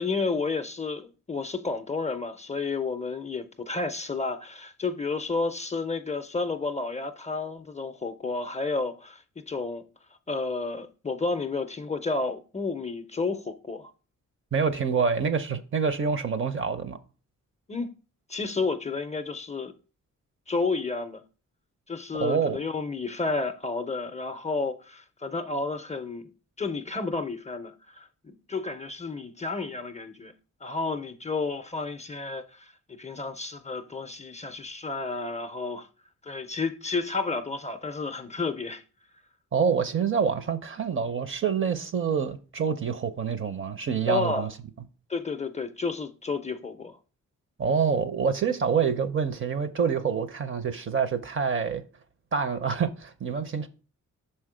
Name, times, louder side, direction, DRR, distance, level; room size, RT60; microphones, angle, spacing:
voice 1, 0.0-9.8 10.3-13.9 17.7-17.9 18.3-19.7 20.5-21.2 21.9-26.3 26.6-30.3 30.6-35.9 36.2-38.8 44.1-44.5 45.1-47.0, left 3 dB, 25° left, 0.4 m, -31 dB
voice 2, 14.5-17.0 22.1-22.6 39.5-44.5 47.6-51.8 52.3-53.7, right 6 dB, 40° right, 0.6 m, -26 dB
6.1 x 4.4 x 4.8 m
wide cardioid pair, 150°, 31 cm